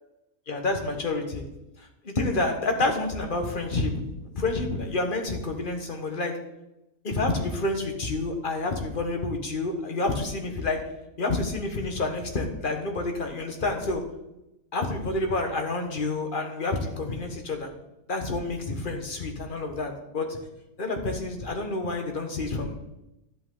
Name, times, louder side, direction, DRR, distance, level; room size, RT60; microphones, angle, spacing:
voice 1, 0.5-1.4 2.0-6.3 7.0-10.8 11.2-14.0 14.7-17.7 18.1-20.4 20.8-22.8, left 2 dB, 35° left, 4 dB, 1.3 m, -28 dB
11.0 x 8.1 x 3.8 m, 0.92 s
omnidirectional pair, 1.6 m